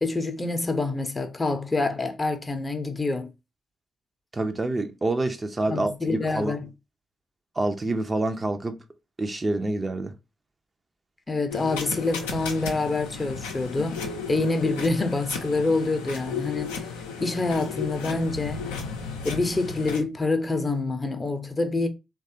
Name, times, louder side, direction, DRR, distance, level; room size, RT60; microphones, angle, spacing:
voice 1, 0.0-3.3 5.7-6.7 11.3-16.9 17.2-18.7 19.2-21.9, left 3 dB, 25° left, 0.6 m, -26 dB
voice 2, 4.3-6.6 7.6-8.7 9.2-10.1, right 2 dB, 25° right, 0.5 m, -27 dB
sound 1, 11.5-20.0, left 5 dB, 75° left, 0.5 m, -34 dB
3.2 x 2.3 x 2.7 m
figure-of-eight pair, 40°, 0 cm